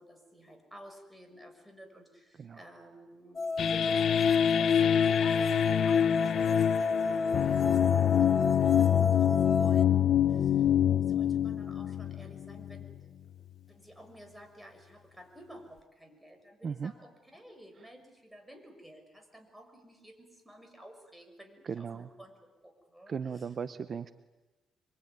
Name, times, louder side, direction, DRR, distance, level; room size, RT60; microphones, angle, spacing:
voice 1, 0.0-13.3 13.7-23.4, right 1 dB, 5° right, 5 dB, 6.1 m, -52 dB
sound 1, 3.4-9.8, left 3 dB, 35° left, 1.5 m, -31 dB
sound 2, 3.6-12.9, left 10 dB, 65° left, 0.9 m, -26 dB
voice 2, 21.6-22.1 23.1-24.1, right 6 dB, 45° right, 12 dB, 0.9 m, -37 dB
25.5 x 23.5 x 9.6 m, 1.2 s
cardioid pair, 90°, 0 cm